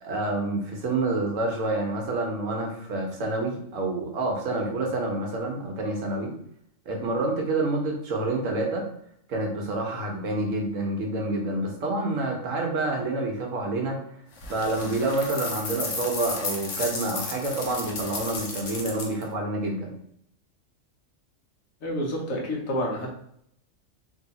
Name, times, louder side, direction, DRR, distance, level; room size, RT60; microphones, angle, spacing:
voice 1, 0.0-6.3 6.9-8.8 9.3-14.0 14.5-19.9, right 2 dB, 75° right, 1 dB, 1.3 m, -28 dB
sound 1, 14.4-19.2, left 3 dB, 65° left, 1.1 m, -34 dB
voice 2, 21.8-23.2, equal, 90° left, -1 dB, 1.5 m, -29 dB
3.4 x 2.7 x 4.0 m, 0.71 s
omnidirectional pair, 1.4 m